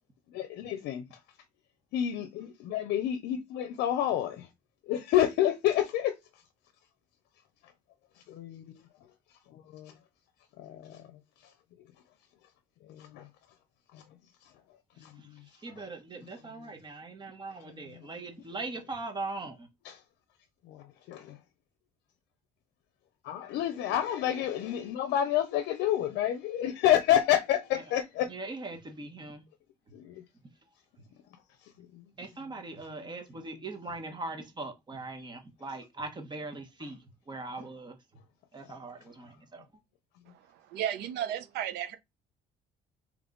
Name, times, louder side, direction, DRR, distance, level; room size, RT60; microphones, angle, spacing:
voice 1, 0.3-1.0 1.9-4.5 4.9-6.2 8.3-8.6 9.5-9.9 10.6-11.1 12.9-13.3 13.9-14.0 15.0-15.1 19.8-20.0 20.7-21.4 23.2-28.3 29.9-30.1 31.9-32.0, left 11 dB, 80° left, 0.6 m, -29 dB
voice 2, 15.6-19.7 28.2-29.4 32.2-38.0 38.5-39.7, right 3 dB, 25° right, 1.2 m, -40 dB
voice 3, 40.3-42.0, right 10 dB, 80° right, 0.7 m, -34 dB
3.4 x 3.1 x 3.9 m
cardioid pair, 110°, 17 cm